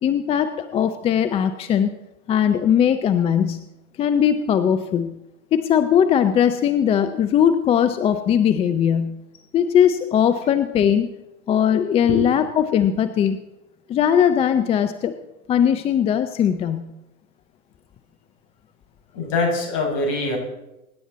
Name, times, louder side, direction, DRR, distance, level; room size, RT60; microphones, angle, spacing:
voice 1, 0.0-1.9 2.3-3.6 4.0-5.2 5.5-9.2 9.5-11.1 11.5-13.4 13.9-15.1 15.5-16.8, left 9 dB, 15° left, 10 dB, 0.5 m, -19 dB
voice 2, 19.1-20.4, left 3 dB, 40° left, 2 dB, 6.4 m, -23 dB
24.5 x 11.0 x 4.1 m, 0.94 s
hypercardioid pair, 110°, 43 cm